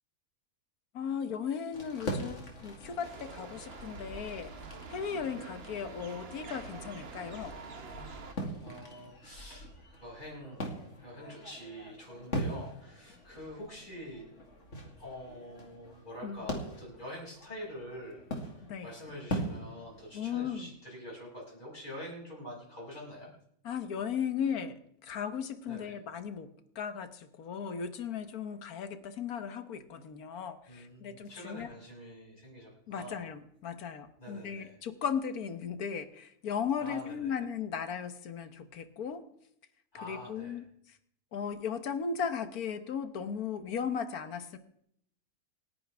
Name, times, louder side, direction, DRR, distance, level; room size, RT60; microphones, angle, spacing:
voice 1, 0.9-4.5 4.9-7.6 7.9-8.1 16.2-16.5 18.6-18.9 20.1-20.7 23.6-26.5 26.7-31.7 32.9-39.2 40.0-41.0 41.3-44.6, left 7 dB, 75° left, 10 dB, 1.6 m, -36 dB
sound 1, 1.7-20.6, equal, 50° left, 2.7 m, -42 dB
sound 2, 3.0-8.3, right 5 dB, 45° right, 1.3 m, -47 dB
voice 2, 8.6-9.7 10.0-10.6 11.0-14.3 15.0-18.2 18.8-23.3 25.7-26.0 30.7-33.3 34.2-34.7 36.8-37.4 39.9-40.6, equal, 30° left, -4 dB, 7.0 m, -46 dB
28.5 x 10.0 x 3.5 m, 0.72 s
omnidirectional pair, 1.6 m